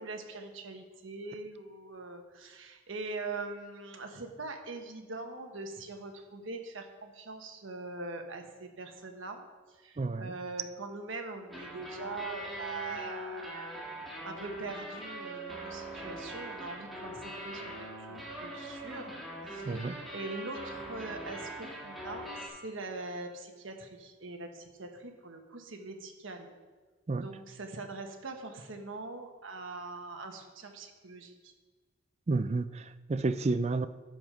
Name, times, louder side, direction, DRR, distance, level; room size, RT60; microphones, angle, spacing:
voice 1, 0.0-9.4 9.7-13.8 14.2-26.5 27.1-31.5, right 3 dB, 75° right, 4 dB, 1.3 m, -42 dB
voice 2, 10.0-10.3 19.7-20.0 27.1-27.3 32.3-33.9, right 3 dB, 30° right, 12 dB, 0.4 m, -30 dB
sound 1, 11.5-22.5, right 1 dB, ahead, 1.8 m, -42 dB
10.5 x 7.1 x 5.1 m, 1.3 s
head